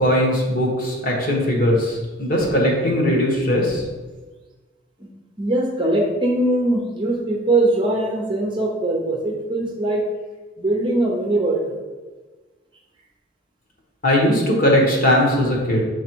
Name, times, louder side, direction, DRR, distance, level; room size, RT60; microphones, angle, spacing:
voice 1, 0.0-3.8 14.0-15.8, left 1 dB, 45° left, -1 dB, 1.3 m, -19 dB
voice 2, 5.4-10.0 10.6-11.6, right 2 dB, 25° right, -1 dB, 0.8 m, -21 dB
7.3 x 3.4 x 4.5 m, 1.3 s
head